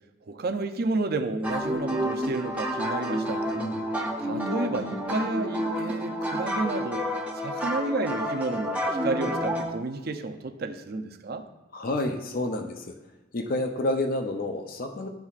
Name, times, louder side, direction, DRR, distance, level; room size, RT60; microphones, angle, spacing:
voice 1, 0.2-3.5 4.2-7.0 7.4-11.4, right 3 dB, 50° right, 6 dB, 0.5 m, -31 dB
sound 1, 1.4-9.7, equal, 5° right, 0.7 m, -29 dB
voice 2, 3.5-3.9 11.7-13.0 13.3-15.1, left 2 dB, 45° left, 4 dB, 0.5 m, -29 dB
11.5 x 4.1 x 2.4 m, 1.1 s
head